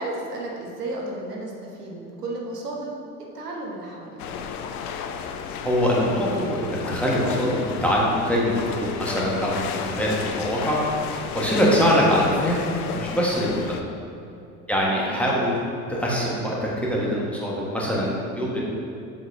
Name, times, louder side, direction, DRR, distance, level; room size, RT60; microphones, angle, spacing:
voice 1, 0.0-2.9 3.3-4.3 14.7-15.3, right 2 dB, 85° right, -2 dB, 1.0 m, -33 dB
sound 1, 4.2-13.8, left 6 dB, 70° left, 0.6 m, -33 dB
voice 2, 5.6-11.0 11.3-12.6 12.9-13.8 14.7-15.6 15.9-18.6, equal, 5° left, -5 dB, 1.4 m, -23 dB
7.5 x 6.0 x 2.7 m, 2.6 s
figure-of-eight pair, 65°, 46 cm